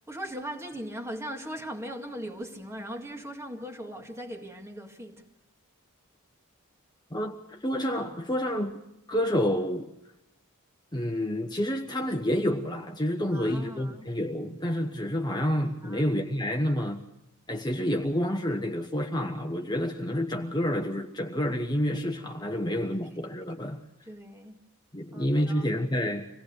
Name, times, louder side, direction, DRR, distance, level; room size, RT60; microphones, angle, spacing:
voice 1, 0.1-5.3 13.3-14.1 15.8-16.0 24.1-24.6 25.1-25.7, equal, 10° right, 2.0 m, -39 dB
voice 2, 7.1-8.8 9.1-9.9 10.9-17.0 17.5-23.8 24.9-26.3, equal, 20° left, 1.2 m, -29 dB
26.0 x 18.0 x 6.6 m
head